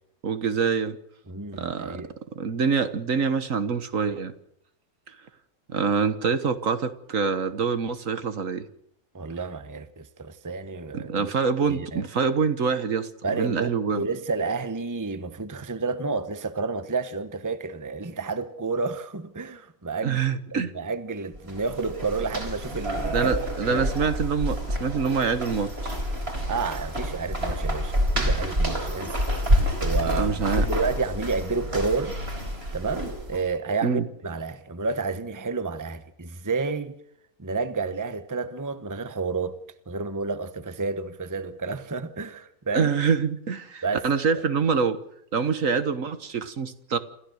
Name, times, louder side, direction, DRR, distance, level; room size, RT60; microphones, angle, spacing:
voice 1, 0.2-1.0 1.5-2.0 2.4-4.3 5.7-8.7 10.9-14.1 20.0-20.7 23.1-25.9 29.6-29.7 30.1-30.7 33.8-34.1 42.7-45.0 45.3-47.0, right 5 dB, 60° right, 1.7 m, -25 dB
voice 2, 1.3-2.1 9.1-11.3 11.7-12.0 13.2-20.2 20.5-23.3 23.6-23.8 26.5-29.2 29.8-32.2 32.7-37.0 37.4-39.6 39.9-42.9 43.8-44.1, right 4 dB, 15° right, 1.0 m, -30 dB
sound 1, 21.3-33.5, equal, 40° right, 4.2 m, -28 dB
27.5 x 15.0 x 6.5 m
omnidirectional pair, 1.6 m